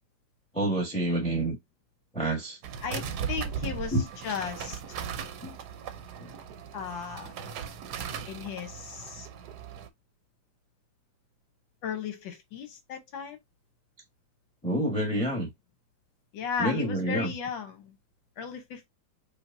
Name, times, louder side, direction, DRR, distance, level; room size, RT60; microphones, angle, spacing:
voice 1, 0.5-1.6 2.1-2.6 3.9-4.1 5.4-5.6 6.2-6.3 14.6-15.5 16.6-17.3, right 1 dB, 5° left, 1.0 m, -28 dB
sound 1, 2.6-9.9, right 7 dB, 70° right, 1.1 m, -38 dB
voice 2, 2.8-4.0 4.2-4.8 6.7-7.3 8.3-9.3 11.8-13.4 16.3-17.9 18.4-18.9, left 7 dB, 80° left, 1.7 m, -35 dB
5.0 x 2.7 x 2.5 m
omnidirectional pair, 2.1 m